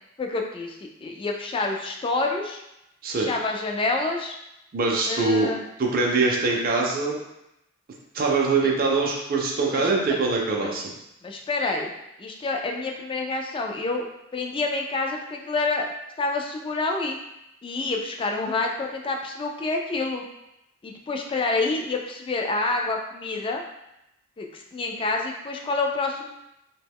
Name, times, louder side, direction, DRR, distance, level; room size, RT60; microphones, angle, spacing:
voice 1, 0.2-2.6 3.2-4.4 5.1-5.6 9.6-10.2 10.6-10.8 11.2-11.9 12.2-14.1 14.3-15.9 16.2-17.2 17.6-20.2 20.8-23.6 24.4-26.4, left 3 dB, 25° left, 2 dB, 0.3 m, -28 dB
voice 2, 4.7-5.5 5.8-7.2 8.1-10.9, right 3 dB, 45° right, -1 dB, 0.5 m, -23 dB
2.9 x 2.2 x 3.4 m, 0.87 s
head